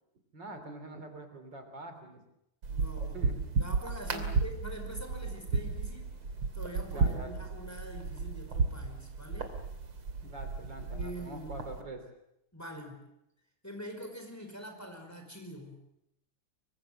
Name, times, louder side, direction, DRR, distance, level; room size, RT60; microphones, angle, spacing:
voice 1, 0.3-2.2 3.0-3.3 4.1-4.2 6.8-7.4 10.2-12.0, right 2 dB, 55° right, 7 dB, 3.8 m, -44 dB
sound 1, 2.6-11.8, right 4 dB, 75° right, 3.7 m, -34 dB
voice 2, 2.7-6.2 6.5-9.6 10.9-11.5 12.5-13.1 13.6-15.9, equal, 5° left, 4 dB, 5.0 m, -45 dB
25.5 x 24.5 x 7.6 m, 0.81 s
omnidirectional pair, 2.4 m